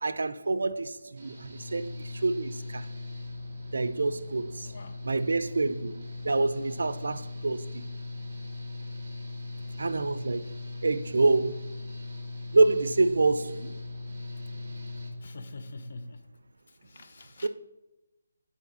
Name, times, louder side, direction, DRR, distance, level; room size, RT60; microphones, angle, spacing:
voice 1, 0.0-2.9 3.7-4.7 5.0-5.9 6.2-7.8 9.8-10.4 10.8-11.7 12.5-13.7 17.4-17.5, right 3 dB, 70° right, 0.4 m, -27 dB
Engine / Mechanical fan, 1.2-15.1, left 2 dB, 20° right, 1.3 m, -39 dB
voice 2, 4.7-5.0 15.1-16.2 16.8-17.5, left 2 dB, 40° left, 0.5 m, -44 dB
7.2 x 4.2 x 4.0 m
hypercardioid pair, 175°, 0 cm